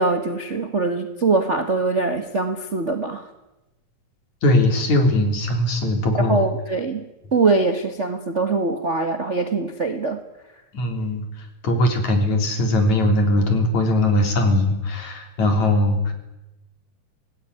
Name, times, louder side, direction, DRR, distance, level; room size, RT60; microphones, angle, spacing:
voice 1, 0.0-3.3 6.2-7.0 7.3-10.2, right 3 dB, 35° right, 7 dB, 1.2 m, -22 dB
voice 2, 4.4-6.4 10.7-16.1, left 1 dB, 65° left, 6 dB, 4.9 m, -20 dB
25.5 x 18.0 x 9.9 m, 0.99 s
omnidirectional pair, 3.6 m